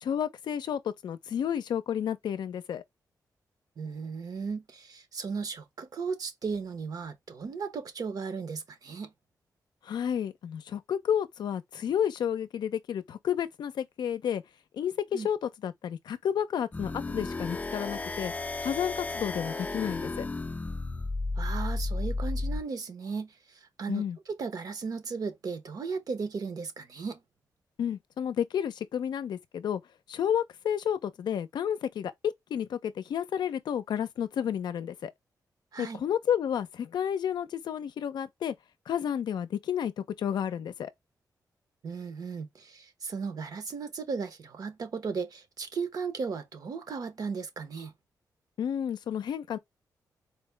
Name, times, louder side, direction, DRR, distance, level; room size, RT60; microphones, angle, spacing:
voice 1, 0.0-2.8 9.8-14.4 14.7-18.3 18.6-20.3 23.9-24.2 27.8-29.8 30.1-35.1 35.8-38.5 38.9-40.9 48.6-49.6, left 9 dB, 80° left, 0.5 m, -31 dB
voice 2, 3.8-9.1 15.1-15.3 21.4-27.2 35.7-36.0 41.8-47.9, right 5 dB, 60° right, 0.8 m, -36 dB
sound 1, 16.7-22.6, left 3 dB, 20° left, 0.4 m, -33 dB
4.3 x 2.1 x 3.2 m
wide cardioid pair, 110°, 7 cm